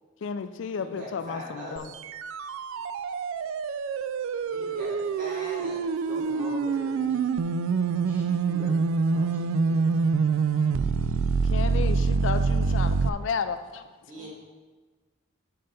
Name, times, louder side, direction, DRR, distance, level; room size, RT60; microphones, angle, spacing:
voice 1, 0.2-1.9 11.4-13.9, left 6 dB, 70° left, 10 dB, 0.4 m, -32 dB
voice 2, 0.8-2.0 4.5-5.9 9.8-9.9 14.1-14.3, equal, 40° right, -6 dB, 2.2 m, -40 dB
sound 1, 1.8-13.1, right 5 dB, 85° right, 0.3 m, -26 dB
voice 3, 6.0-7.3 8.0-8.8 9.0-9.8 14.1-14.3, left 1 dB, 10° right, -5 dB, 1.5 m, -44 dB
5.7 x 5.4 x 5.2 m, 1.3 s
head